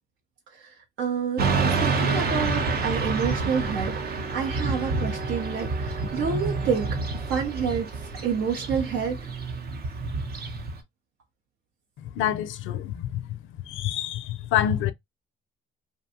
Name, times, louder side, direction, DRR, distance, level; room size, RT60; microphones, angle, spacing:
voice 1, 0.5-7.0 7.3-7.9 8.2-9.3, right 6 dB, 85° right, 0.7 m, -29 dB
Motorcycle / Traffic noise roadway noise, 1.4-10.8, right 4 dB, 50° right, 0.7 m, -28 dB
voice 2, 12.0-13.4 13.6-14.9, left 11 dB, 80° left, 0.4 m, -27 dB
2.6 x 2.2 x 2.6 m
cardioid pair, 90°, 20 cm